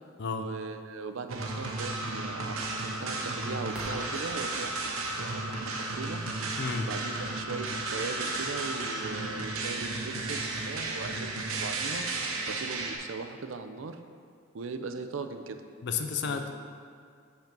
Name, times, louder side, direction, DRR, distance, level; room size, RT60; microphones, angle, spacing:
voice 1, 0.4-6.2 6.8-12.1 12.5-14.0 14.5-15.6 16.2-16.5, right 4 dB, 65° right, 7 dB, 0.5 m, -39 dB
sound 1, 1.3-13.0, right 2 dB, 90° right, 0.8 m, -34 dB
sound 2, 2.2-12.5, equal, 5° right, 0.9 m, -55 dB
voice 2, 6.6-6.9 15.8-16.5, left 5 dB, 55° left, 6 dB, 0.5 m, -31 dB
5.7 x 5.2 x 5.8 m, 2.2 s
head